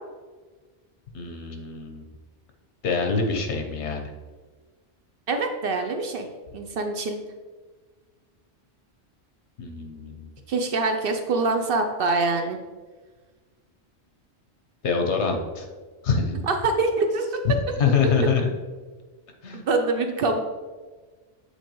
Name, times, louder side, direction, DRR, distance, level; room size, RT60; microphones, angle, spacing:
voice 1, 1.1-2.0 2.8-4.0 9.6-10.3 14.8-15.7 16.0-16.4 17.4-17.5 17.8-18.5 19.4-19.6, left 5 dB, 75° left, 3 dB, 1.1 m, -25 dB
voice 2, 5.3-6.3 6.5-7.2 10.5-12.6 16.4-17.4 19.5-20.4, right 3 dB, 60° right, 5 dB, 0.8 m, -24 dB
8.2 x 4.0 x 3.1 m, 1.4 s
omnidirectional pair, 1.2 m